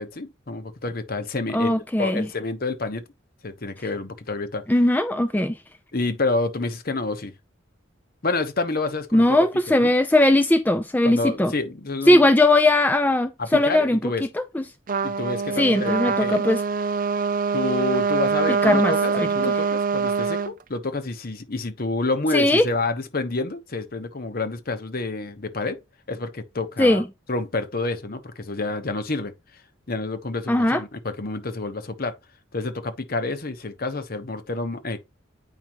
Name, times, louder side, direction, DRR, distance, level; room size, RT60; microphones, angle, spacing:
voice 1, 0.0-3.0 3.4-4.6 5.9-7.3 8.2-9.4 9.7-9.9 11.0-12.2 13.4-14.3 15.0-16.5 17.5-25.8 26.1-27.0 27.3-29.3 29.9-32.1 32.5-35.0, left 3 dB, 50° left, 1.0 m, -28 dB
voice 2, 1.5-2.3 4.7-5.6 9.1-11.5 12.1-14.1 14.5-14.6 15.6-16.6 18.5-19.3 22.3-22.7 26.8-27.0 30.5-30.8, left 1 dB, 10° left, 0.4 m, -19 dB
Trumpet, 14.9-20.5, right 5 dB, 45° right, 0.5 m, -24 dB
9.1 x 4.9 x 3.0 m
head